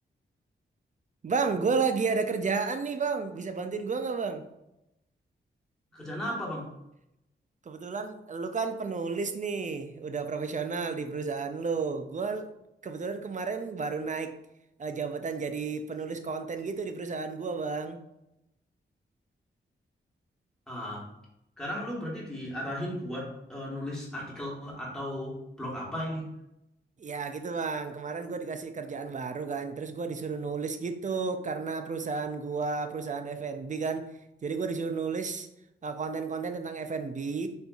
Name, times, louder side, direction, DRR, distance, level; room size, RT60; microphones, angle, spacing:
voice 1, 1.2-4.4 7.7-12.5 12.8-14.4 14.8-18.0 27.0-34.1 34.4-35.5 35.8-37.5, right 4 dB, 40° right, 7 dB, 0.5 m, -32 dB
voice 2, 5.9-6.7 20.7-21.1 21.6-26.3, equal, 5° left, -5 dB, 1.4 m, -35 dB
4.3 x 2.5 x 2.4 m, 0.85 s
cardioid pair, 50°, 21 cm